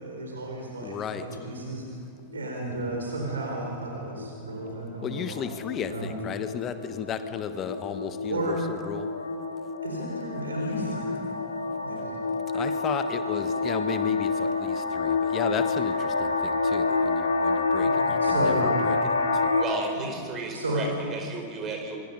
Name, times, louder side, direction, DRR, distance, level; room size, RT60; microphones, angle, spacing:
voice 1, 0.0-1.8 2.3-5.4 5.9-6.1 8.2-8.6 9.8-11.2 11.8-12.1 17.8-18.7 20.0-20.1 20.5-20.9, right 2 dB, 70° right, 0 dB, 4.1 m, -33 dB
voice 2, 0.8-1.2 5.0-9.1 12.5-19.6, left 7 dB, 30° left, 10 dB, 1.4 m, -34 dB
sound 1, 1.3-1.8 2.3-2.5 2.8-3.1 3.3-19.6, left 3 dB, 75° left, 2.7 m, -28 dB
voice 3, 19.6-22.0, right 3 dB, 30° right, 3 dB, 4.9 m, -33 dB
27.0 x 22.5 x 5.5 m, 2.7 s
figure-of-eight pair, 90°, 0 cm